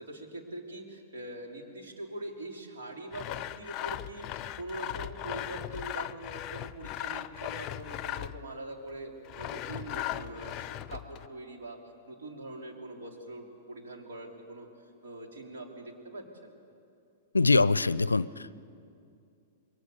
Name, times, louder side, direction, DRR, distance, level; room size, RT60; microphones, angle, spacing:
voice 1, 0.0-11.8 12.1-16.6, right 2 dB, 65° right, 2 dB, 3.6 m, -43 dB
Sawing, 3.1-8.5 9.3-11.3, left 13 dB, 30° left, 0.6 m, -38 dB
voice 2, 17.3-18.5, left 3 dB, 80° left, 20 dB, 0.5 m, -24 dB
26.5 x 22.5 x 6.8 m, 2.5 s
figure-of-eight pair, 100°, 0 cm